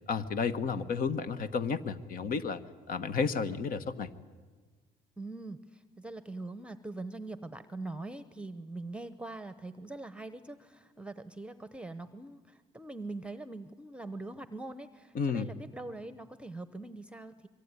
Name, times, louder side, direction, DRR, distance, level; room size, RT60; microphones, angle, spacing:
voice 1, 0.1-2.6 2.9-4.1 15.1-15.5, left 5 dB, 55° left, 11 dB, 1.4 m, -32 dB
voice 2, 5.2-17.5, right 2 dB, 5° right, 12 dB, 0.9 m, -43 dB
25.5 x 23.5 x 9.8 m, 1.4 s
cardioid pair, 110°, 17 cm